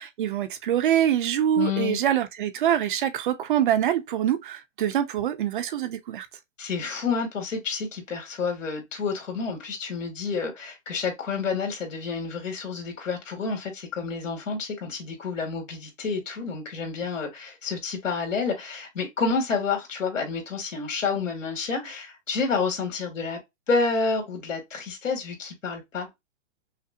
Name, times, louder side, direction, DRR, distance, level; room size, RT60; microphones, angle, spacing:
voice 1, 0.0-6.3, right 10 dB, 45° right, 0.6 m, -25 dB
voice 2, 1.6-2.0 6.6-23.4 23.7-26.1, left 4 dB, 85° left, 2.1 m, -29 dB
5.7 x 2.0 x 2.4 m
hypercardioid pair, 150°, 38 cm